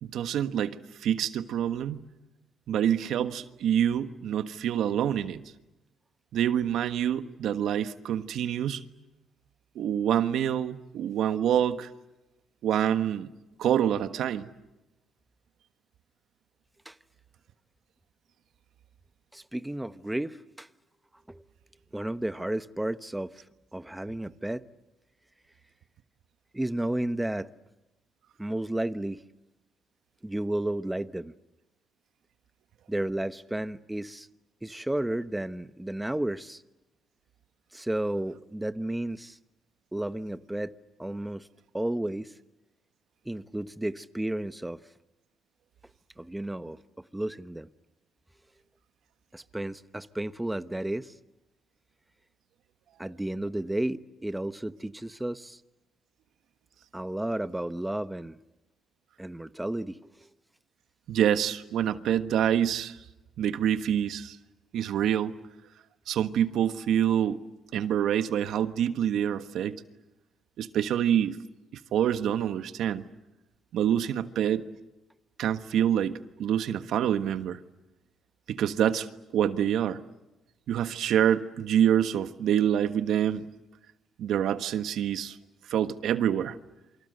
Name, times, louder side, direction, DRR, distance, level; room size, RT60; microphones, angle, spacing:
voice 1, 0.0-2.0 2.7-5.4 6.3-8.8 9.7-11.9 12.6-13.3 13.6-14.5 61.1-63.0 63.4-64.4 64.7-65.3 66.1-67.4 67.7-69.8 70.6-71.4 71.9-73.0 73.7-74.7 75.4-77.6 78.5-79.1 79.3-80.0 80.7-83.5 84.2-85.4 85.7-86.6, right 10 dB, 75° right, 1.4 m, -26 dB
voice 2, 19.3-20.7 21.3-21.5 21.9-23.4 23.7-24.7 26.5-27.5 28.4-29.2 30.2-31.3 32.9-34.3 34.6-36.6 37.7-39.4 39.9-40.7 41.0-41.5 41.7-42.4 43.2-44.8 46.2-47.7 49.3-51.2 53.0-55.6 56.9-58.4 59.2-60.3, right 1 dB, 10° right, 1.0 m, -32 dB
28.0 x 25.0 x 7.9 m
cardioid pair, 90°, 0 cm